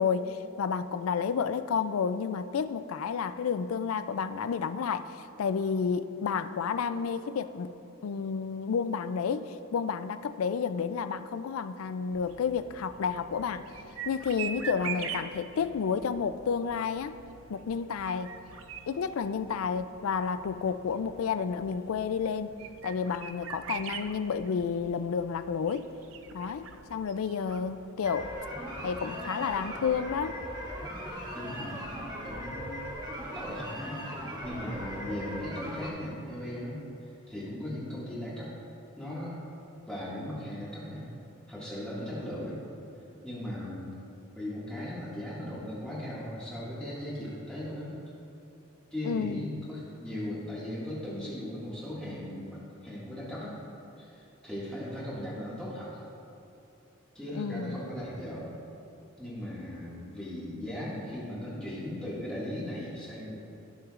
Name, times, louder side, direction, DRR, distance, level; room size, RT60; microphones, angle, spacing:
voice 1, 0.0-7.7 8.0-13.6 14.1-17.1 17.5-18.3 18.9-22.6 22.8-25.9 26.3-28.3 28.8-30.4 49.0-49.5 57.3-57.8, left 6 dB, 90° left, 12 dB, 0.4 m, -31 dB
sound 1, 12.1-27.9, right 7 dB, 70° right, 0.5 m, -44 dB
sound 2, 28.0-35.9, equal, 20° right, 1.9 m, -39 dB
voice 2, 31.3-31.9 32.2-32.8 33.3-36.8 37.3-38.5 39.0-39.4 39.9-41.0 41.5-42.6 43.2-43.9 44.3-48.0 48.9-53.6 54.0-55.9 57.1-58.5 59.2-63.4, left 1 dB, 5° left, -9 dB, 2.0 m, -38 dB
16.0 x 6.2 x 2.5 m, 2.9 s
head